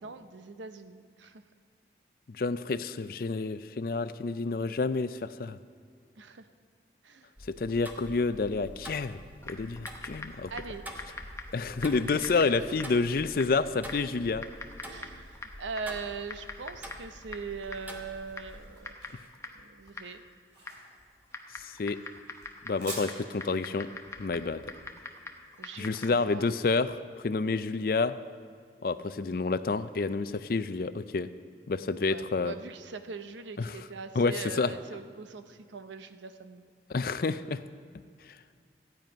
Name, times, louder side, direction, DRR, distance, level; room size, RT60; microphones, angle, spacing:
voice 1, 0.0-1.4 6.2-6.5 7.0-7.3 10.5-10.8 12.2-12.6 13.4-13.5 14.8-19.0 19.5-20.2 25.6-26.5 32.0-36.7, right 4 dB, 90° right, 10 dB, 0.7 m, -41 dB
voice 2, 2.3-5.6 7.5-9.2 9.4-10.5 11.5-14.5 21.6-22.0 22.6-23.9 24.2-24.6 25.8-28.1 28.8-31.3 31.7-32.6 33.6-33.8 34.2-34.7 36.9-37.6 38.3-38.4, left 4 dB, 50° left, 13 dB, 0.4 m, -29 dB
Tick-tock, 7.4-18.8, equal, 10° right, 0.9 m, -47 dB
Typing, 9.4-26.3, left 2 dB, 15° left, 0.7 m, -46 dB
sound 1, 17.8-26.3, right 2 dB, 70° right, 3.2 m, -49 dB
14.5 x 9.1 x 5.2 m, 2.2 s
head